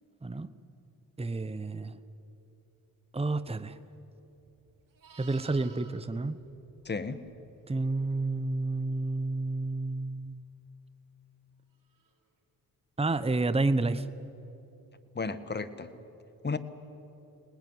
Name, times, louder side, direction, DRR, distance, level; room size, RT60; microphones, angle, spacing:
voice 1, 1.2-2.0 3.1-3.8 5.2-6.4 7.7-10.4 13.0-14.1, right 2 dB, 15° right, 12 dB, 1.0 m, -30 dB
Livestock farm animals working animals, 4.3-7.6 11.9-12.1, right 6 dB, 65° right, 4.0 m, -56 dB
voice 2, 6.8-7.2 15.1-15.9 16.4-16.6, left 4 dB, 30° left, 12 dB, 1.5 m, -33 dB
24.5 x 19.5 x 9.6 m, 2.9 s
supercardioid pair, 55°, 36 cm